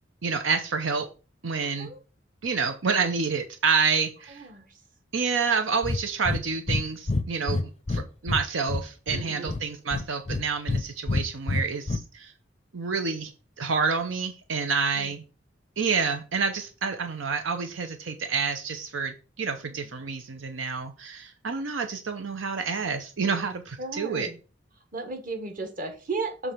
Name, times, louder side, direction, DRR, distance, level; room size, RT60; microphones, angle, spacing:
voice 1, 0.2-1.1 1.4-1.9 2.4-4.5 5.1-12.3 12.7-13.3 13.6-15.2 15.8-24.3, right 5 dB, 85° right, 7 dB, 0.7 m, -28 dB
Breathing, 5.8-6.0 6.3-6.4 6.7-6.8 7.1-8.4 8.7-9.6 9.9-10.8 11.1-12.0, left 2 dB, 30° left, 0.5 m, -27 dB
voice 2, 9.1-9.5 15.0-15.1 19.6-19.7 23.8-24.4 24.9-26.5, right 3 dB, 45° right, 5 dB, 1.3 m, -34 dB
7.1 x 3.3 x 5.5 m, 0.34 s
head